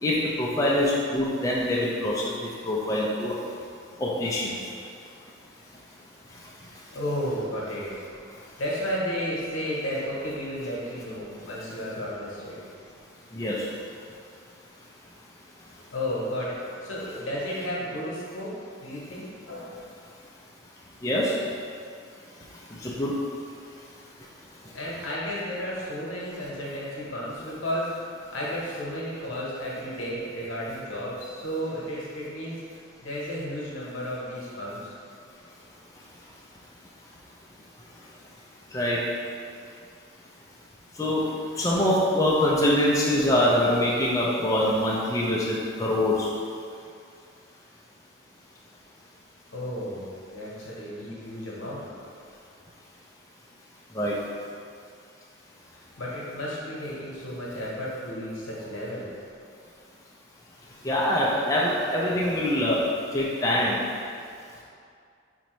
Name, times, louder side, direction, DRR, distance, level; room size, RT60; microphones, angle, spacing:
voice 1, 0.0-3.3 4.0-4.6 13.3-13.6 21.0-21.3 22.8-23.1 38.7-39.0 41.0-41.2 41.6-46.3 53.9-54.1 60.8-62.8 63.1-63.8, left 1 dB, 15° left, -5 dB, 0.3 m, -24 dB
voice 2, 6.9-7.9 8.6-12.6 15.9-16.6 16.8-18.5 18.8-19.9 24.7-27.9 28.3-32.6 33.0-34.8 49.5-52.0 56.0-59.1, equal, 85° left, -5 dB, 0.9 m, -33 dB
4.3 x 2.6 x 3.0 m, 2.3 s
head